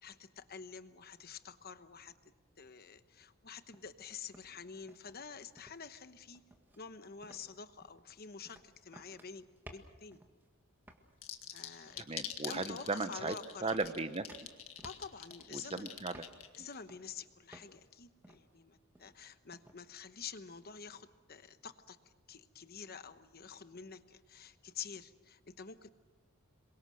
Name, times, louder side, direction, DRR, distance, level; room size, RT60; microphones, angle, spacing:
voice 1, 0.0-2.3 2.6-6.4 6.8-10.2 11.5-12.0 12.5-13.8 14.8-15.9 16.6-22.0 22.3-25.9, left 6 dB, 45° left, 11 dB, 1.0 m, -48 dB
sound 1, 3.7-4.1 4.3-5.3 5.6-5.9 6.3-6.8 7.2-7.5 7.8-10.5 10.9-11.1 11.8-12.2 12.6-12.8 13.1-13.4 13.7-15.7 16.1-16.5 16.9-17.2 17.5-17.9 18.2-18.6 19.0-19.2 19.5-20.0, equal, 10° right, 1.8 m, -57 dB
sound 2, 11.2-16.8, left 10 dB, 75° left, 1.9 m, -45 dB
voice 2, 12.0-13.3 13.6-14.3 15.5-16.3 16.6-16.7, right 3 dB, 25° right, 11 dB, 1.0 m, -37 dB
26.5 x 23.0 x 6.4 m, 1.3 s
head